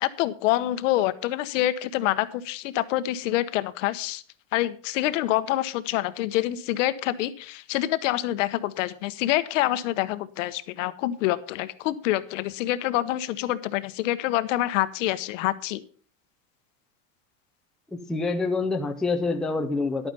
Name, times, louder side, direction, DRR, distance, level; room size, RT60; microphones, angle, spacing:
voice 1, 0.0-4.2 4.5-15.8, left 15 dB, 65° left, 14 dB, 1.0 m, -26 dB
voice 2, 17.9-20.1, left 3 dB, ahead, 4 dB, 0.5 m, -26 dB
11.0 x 9.1 x 5.4 m, 0.43 s
supercardioid pair, 160°, 40 cm